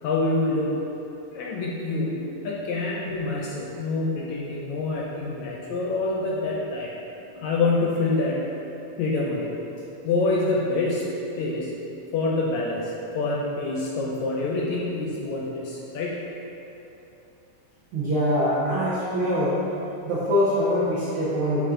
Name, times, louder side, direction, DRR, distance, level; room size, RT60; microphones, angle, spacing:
voice 1, 0.0-0.8 1.3-6.9 7.4-8.4 9.0-9.6 10.0-11.7 12.1-16.3, left 3 dB, 75° left, -3 dB, 1.8 m, -26 dB
voice 2, 17.9-19.6 20.0-21.7, equal, 85° right, -9 dB, 1.1 m, -24 dB
6.8 x 4.1 x 3.7 m, 2.9 s
omnidirectional pair, 3.7 m